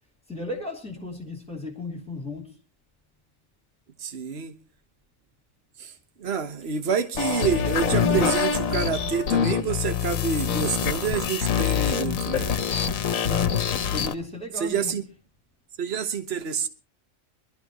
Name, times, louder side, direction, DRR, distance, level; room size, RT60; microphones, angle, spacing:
voice 1, 0.3-2.5 13.2-13.7 13.9-14.9, left 2 dB, 5° left, 3.1 m, -35 dB
voice 2, 4.0-4.6 5.8-12.5 14.5-15.1 15.8-16.7, right 6 dB, 50° right, 1.4 m, -28 dB
sound 1, 7.1-14.1, left 7 dB, 85° left, 1.4 m, -25 dB
22.0 x 13.0 x 3.0 m
omnidirectional pair, 1.4 m